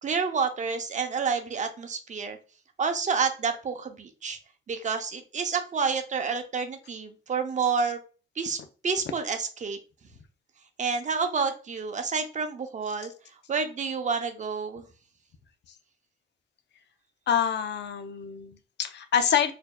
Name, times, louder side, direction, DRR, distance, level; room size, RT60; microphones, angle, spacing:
voice 1, 0.0-2.4 2.8-4.4 4.7-8.0 8.4-8.6 8.8-9.8 10.8-13.1 13.5-14.9, right 5 dB, 40° right, 7 dB, 0.6 m, -29 dB
voice 2, 17.3-19.5, left 8 dB, 60° left, 9 dB, 0.5 m, -26 dB
4.3 x 2.7 x 2.2 m, 0.36 s
cardioid pair, 90°, 20 cm